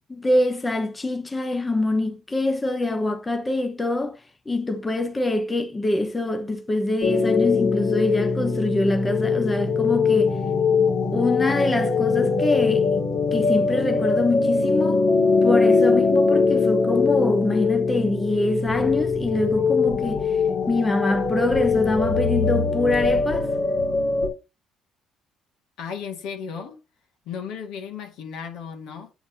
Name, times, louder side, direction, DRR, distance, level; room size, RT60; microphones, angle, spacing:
voice 1, 0.1-4.2 4.5-10.4 11.1-12.9 13.3-15.1 15.4-20.4 20.7-23.5, left 2 dB, 15° left, 0.9 m, -24 dB
sound 1, 7.0-24.3, left 4 dB, 60° left, 2.2 m, -22 dB
voice 2, 25.8-26.8 27.3-29.1, left 7 dB, 80° left, 2.0 m, -35 dB
8.6 x 3.9 x 2.8 m
cardioid pair, 120°, 0 cm